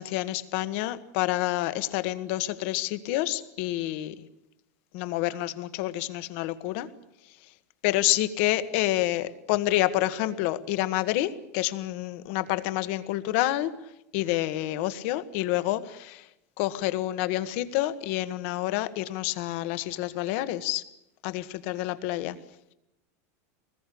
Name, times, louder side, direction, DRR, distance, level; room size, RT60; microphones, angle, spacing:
voice 1, 0.0-4.2 4.9-6.9 7.8-13.7 14.1-16.2 16.6-20.8 21.2-22.4, left 15 dB, 50° left, 12 dB, 1.7 m, -28 dB
24.5 x 20.0 x 8.6 m, 0.86 s
supercardioid pair, 170°, 9 cm